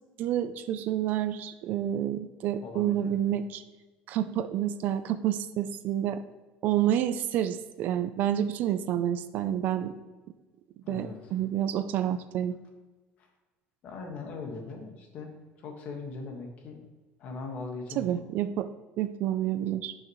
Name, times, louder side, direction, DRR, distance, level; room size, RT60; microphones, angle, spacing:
voice 1, 0.2-3.6 4.1-6.2 6.6-10.0 10.9-12.6 18.0-18.7 19.0-19.9, right 11 dB, 45° right, 11 dB, 0.4 m, -29 dB
voice 2, 2.6-3.3 10.8-11.4 13.2-13.3 13.8-15.3 15.6-16.8 17.2-18.3, left 3 dB, 40° left, 2 dB, 1.5 m, -40 dB
12.0 x 6.4 x 3.1 m, 1.2 s
cardioid pair, 180°, 4 cm